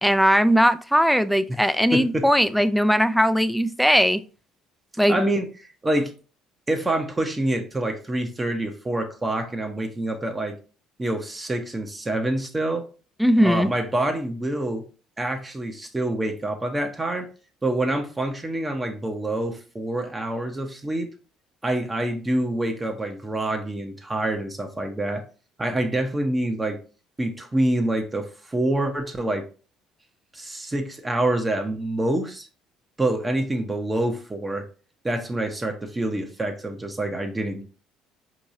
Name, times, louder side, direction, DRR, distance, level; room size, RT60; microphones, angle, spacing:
voice 1, 0.0-4.2 5.0-5.2 13.2-13.7, equal, ahead, 0.3 m, -19 dB
voice 2, 1.9-2.3 5.1-5.5 5.8-6.1 6.7-10.6 11.0-12.8 13.4-14.8 15.2-17.3 17.6-21.1 21.6-25.2 25.6-26.8 27.2-29.5 30.3-32.5 33.0-34.7 35.0-37.6, right 1 dB, 20° right, 0.8 m, -26 dB
4.5 x 2.9 x 2.6 m
hypercardioid pair, 70°, 0 cm